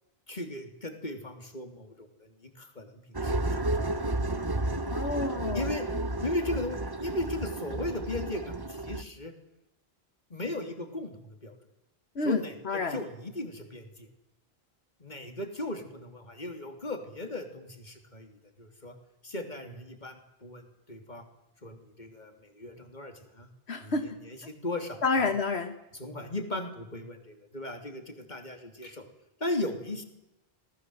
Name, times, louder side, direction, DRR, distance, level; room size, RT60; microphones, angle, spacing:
voice 1, 0.3-3.9 5.5-5.9 6.2-9.3 10.3-11.6 12.2-14.1 15.0-18.9 19.2-21.3 21.6-23.5 23.8-25.3 25.9-29.1 29.4-30.0, left 2 dB, 45° left, 6 dB, 3.4 m, -37 dB
sound 1, 3.1-9.0, right 2 dB, 20° right, 1.1 m, -32 dB
voice 2, 4.9-5.6 12.2-12.4 12.7-13.0 23.7-24.0 25.0-25.7, left 3 dB, 80° left, 8 dB, 1.8 m, -28 dB
25.5 x 19.5 x 8.0 m, 0.89 s
omnidirectional pair, 1.1 m